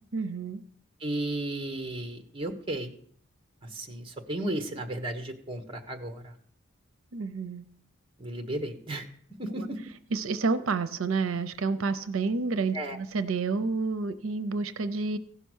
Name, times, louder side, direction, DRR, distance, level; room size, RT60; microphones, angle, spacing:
voice 1, 0.1-0.6 7.1-7.7 9.6-9.7 10.1-15.2, right 4 dB, 85° right, 12 dB, 0.6 m, -29 dB
voice 2, 1.0-2.9 3.6-6.3 8.2-9.1 9.4-9.8 12.7-13.0, right 1 dB, 25° right, 5 dB, 1.2 m, -34 dB
16.0 x 5.6 x 6.3 m, 0.62 s
head